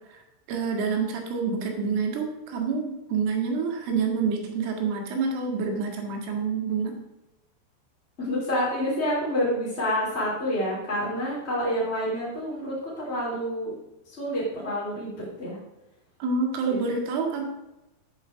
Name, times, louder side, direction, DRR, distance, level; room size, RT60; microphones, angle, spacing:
voice 1, 0.5-7.0 16.2-17.5, right 5 dB, 85° right, 1 dB, 4.4 m, -27 dB
voice 2, 8.2-13.7 14.2-15.6 16.7-16.9, equal, 15° left, -7 dB, 2.5 m, -28 dB
9.1 x 8.2 x 6.2 m, 0.95 s
omnidirectional pair, 5.7 m